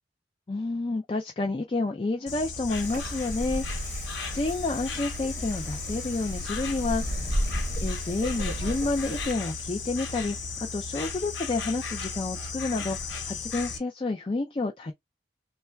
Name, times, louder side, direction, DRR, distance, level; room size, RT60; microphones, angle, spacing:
voice 1, 0.5-7.4 7.8-10.4 10.7-14.9, left 3 dB, 30° left, 0.4 m, -30 dB
Insect, 2.3-13.8, left 4 dB, 80° left, 0.8 m, -36 dB
Wind, 2.7-9.3, equal, 45° right, 0.8 m, -34 dB
3.2 x 2.2 x 4.3 m
head